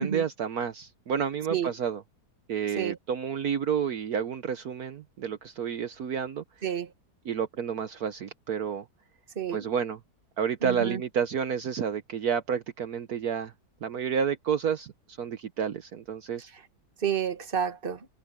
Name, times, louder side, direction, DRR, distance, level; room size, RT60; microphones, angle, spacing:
voice 1, 0.0-2.0 2.5-6.4 7.3-8.8 9.5-10.0 10.4-13.5 13.8-14.9 15.2-16.5, right 7 dB, 65° right, 1.4 m, -30 dB
voice 2, 9.3-9.7 10.6-11.0 16.5-16.6 17.0-18.1, right 8 dB, 35° right, 1.6 m, -30 dB
omnidirectional pair, 1.8 m